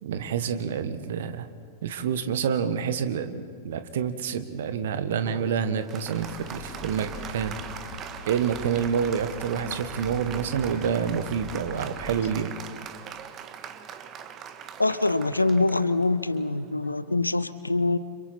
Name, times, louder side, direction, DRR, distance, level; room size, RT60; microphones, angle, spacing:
voice 1, 0.0-1.5 1.8-7.6 8.2-12.6, right 7 dB, 60° right, 10 dB, 1.5 m, -28 dB
Applause, 5.3-17.1, right 8 dB, 30° right, 1.4 m, -41 dB
Bus, 6.1-12.3, left 3 dB, 55° left, 2.3 m, -42 dB
voice 2, 14.8-18.0, left 2 dB, 85° left, 15 dB, 0.8 m, -24 dB
30.0 x 27.0 x 4.4 m, 2.2 s
figure-of-eight pair, 90°, 0 cm